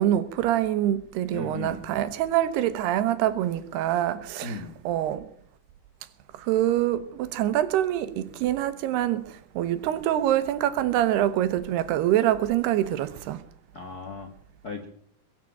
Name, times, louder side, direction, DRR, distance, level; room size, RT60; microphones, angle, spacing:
voice 1, 0.0-4.6 4.9-5.2 6.5-9.2 9.6-13.4, right 12 dB, 80° right, 3.0 m, -25 dB
voice 2, 1.3-1.9 4.4-4.8 13.7-14.3 14.6-14.9, left 4 dB, 70° left, 0.9 m, -36 dB
21.5 x 7.3 x 9.0 m
omnidirectional pair, 4.8 m